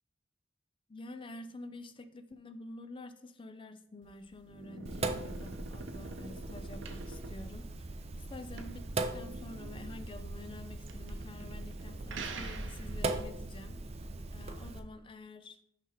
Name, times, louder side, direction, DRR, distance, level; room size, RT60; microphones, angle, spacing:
voice 1, 0.9-8.9 9.1-15.6, left 2 dB, 25° left, 10 dB, 0.5 m, -48 dB
sound 1, 4.0-13.3, right 3 dB, 70° right, 0.7 m, -47 dB
Sink (filling or washing), 4.8-14.8, right 2 dB, 30° right, 0.6 m, -40 dB
6.1 x 5.7 x 3.9 m, 0.71 s
head